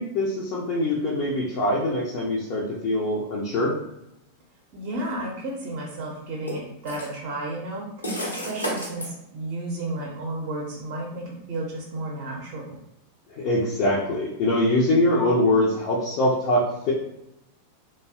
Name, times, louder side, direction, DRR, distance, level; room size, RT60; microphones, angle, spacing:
voice 1, 0.0-3.8 13.3-16.9, left 1 dB, 45° left, -5 dB, 0.5 m, -23 dB
voice 2, 4.7-12.8, right 2 dB, 45° right, -2 dB, 0.6 m, -33 dB
sound 1, 5.0-5.1 6.5-7.1 8.0-9.1, equal, 80° left, 0.8 m, -31 dB
2.6 x 2.1 x 2.3 m, 0.81 s
figure-of-eight pair, 90°, 0 cm